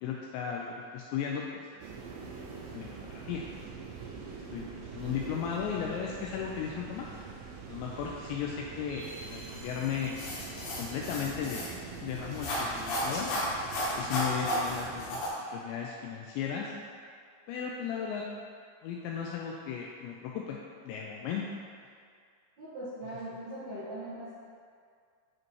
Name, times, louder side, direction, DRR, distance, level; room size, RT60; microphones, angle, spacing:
voice 1, 0.0-1.8 2.7-3.4 4.5-7.1 7.7-10.2 10.8-13.3 14.0-15.2 15.5-16.7 17.5-18.3 18.8-20.6 20.8-21.5, left 7 dB, 85° left, -1 dB, 2.5 m, -35 dB
sound 1, 1.8-15.1, right 5 dB, 85° right, 3.1 m, -44 dB
sound 2, 10.2-15.3, equal, 65° left, 3.3 m, -34 dB
voice 2, 22.6-24.3, right 1 dB, 65° right, -13 dB, 1.8 m, -40 dB
9.5 x 5.1 x 3.1 m, 2.1 s
omnidirectional pair, 5.5 m